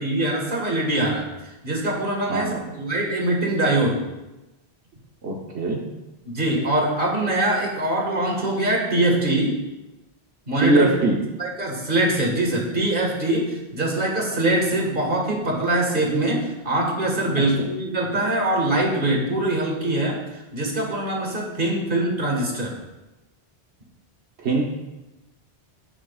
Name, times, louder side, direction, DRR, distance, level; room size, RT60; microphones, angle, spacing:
voice 1, 0.0-4.0 6.3-9.6 10.5-10.9 11.4-22.7, right 1 dB, 55° right, -1 dB, 2.0 m, -23 dB
voice 2, 2.3-2.7 5.2-5.8 10.6-11.2 17.6-17.7 24.4-24.6, right 2 dB, 85° right, -1 dB, 1.3 m, -22 dB
18.0 x 6.2 x 2.4 m, 1.0 s
omnidirectional pair, 1.1 m